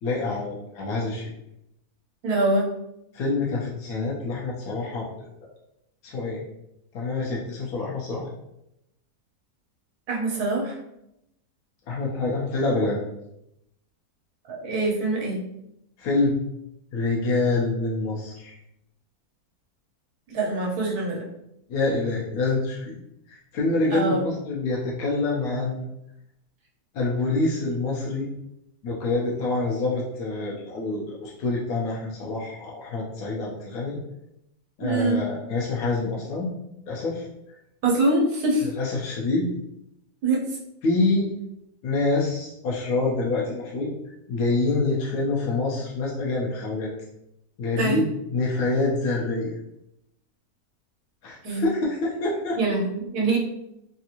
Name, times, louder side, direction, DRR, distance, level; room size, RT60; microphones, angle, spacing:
voice 1, 0.0-1.3 3.1-5.1 5.4-5.5 6.0-6.4 6.9-8.3 11.9-13.0 16.0-16.4 16.9-18.6 21.7-22.9 23.3-25.9 26.9-28.3 28.8-34.0 34.8-36.5 36.9-37.3 38.6-39.5 40.8-41.3 41.8-43.9 44.3-46.9 47.6-48.0 48.3-49.5 51.2-52.6, left 3 dB, 80° left, -4 dB, 1.1 m, -26 dB
voice 2, 2.2-2.6 10.1-10.8 14.5-15.4 20.3-21.2 23.9-24.2 34.8-35.2 37.8-38.7 40.2-40.6 47.8-48.0 51.4-51.6 52.6-53.4, right 2 dB, 80° right, -3 dB, 1.3 m, -24 dB
3.5 x 2.4 x 2.8 m, 0.83 s
omnidirectional pair, 1.6 m